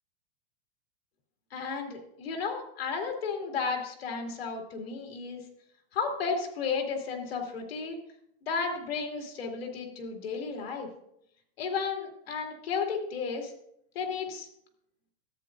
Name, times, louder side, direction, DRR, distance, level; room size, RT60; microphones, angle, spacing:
voice 1, 1.5-5.4 5.9-8.0 8.4-10.9 11.6-13.5 13.9-14.5, left 5 dB, 90° left, 2 dB, 2.4 m, -33 dB
13.5 x 8.8 x 2.6 m, 0.72 s
supercardioid pair, 150°, 29 cm